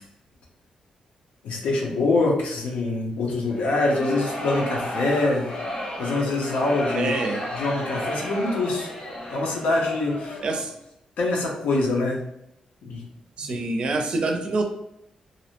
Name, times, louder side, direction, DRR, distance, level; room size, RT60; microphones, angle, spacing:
voice 1, 1.4-5.5 6.0-7.1 7.6-8.9 9.3-10.4 11.2-12.2 12.8-13.0, left 2 dB, 90° left, -1 dB, 0.7 m, -24 dB
sound 1, 3.5-10.7, left 1 dB, 50° left, 0.6 m, -33 dB
voice 2, 6.9-7.4 10.4-10.7 13.4-14.6, right 2 dB, 50° right, 3 dB, 0.4 m, -26 dB
2.6 x 2.1 x 2.9 m, 0.81 s
wide cardioid pair, 150°, 2 cm